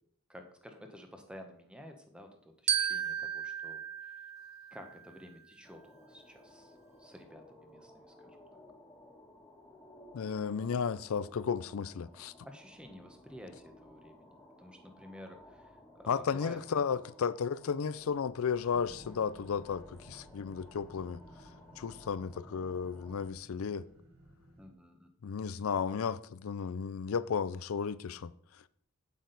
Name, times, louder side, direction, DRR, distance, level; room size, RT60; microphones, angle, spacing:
voice 1, 0.3-4.1 4.7-8.6 12.4-17.0 24.6-25.1, equal, 5° right, 1.0 m, -52 dB
Glockenspiel, 2.7-5.2, right 9 dB, 30° right, 0.8 m, -34 dB
sound 1, 5.6-23.3, left 1 dB, 15° left, 1.6 m, -57 dB
voice 2, 10.1-12.3 16.1-21.2 21.8-23.9 25.2-28.3, left 6 dB, 65° left, 0.4 m, -34 dB
sound 2, 18.7-24.7, equal, 65° right, 3.1 m, -56 dB
8.4 x 8.1 x 4.0 m
head